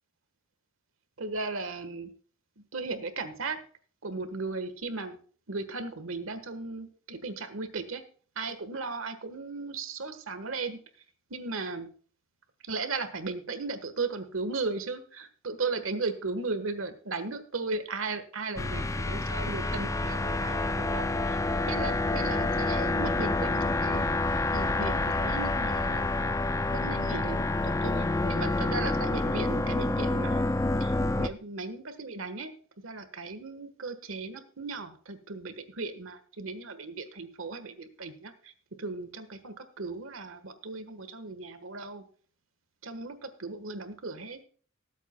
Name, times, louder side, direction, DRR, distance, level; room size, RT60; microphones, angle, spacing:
voice 1, 1.2-2.1 2.7-3.6 4.0-5.2 5.5-8.0 8.3-10.8 11.3-11.9 12.6-24.1 24.5-26.2 26.7-30.5 30.8-32.5 32.8-38.5 38.8-42.0 42.8-44.4, right 3 dB, 80° right, 9 dB, 1.4 m, -36 dB
sound 1, 18.6-31.3, left 2 dB, 15° left, 0.4 m, -28 dB
19.5 x 8.2 x 2.3 m, 0.43 s
head